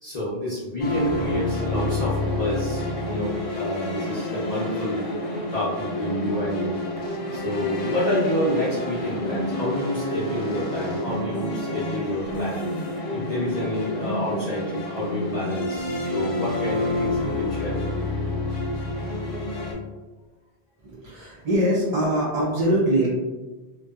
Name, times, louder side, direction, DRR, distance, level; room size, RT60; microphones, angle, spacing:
voice 1, 0.0-5.1 5.5-7.0 7.3-12.6 13.1-17.8, left 1 dB, 45° left, -10 dB, 0.6 m, -28 dB
sound 1, 0.8-19.7, left 1 dB, 70° left, 0.9 m, -28 dB
voice 2, 20.8-23.1, right 1 dB, 55° right, -6 dB, 0.5 m, -23 dB
2.6 x 2.2 x 2.3 m, 1.2 s
omnidirectional pair, 1.1 m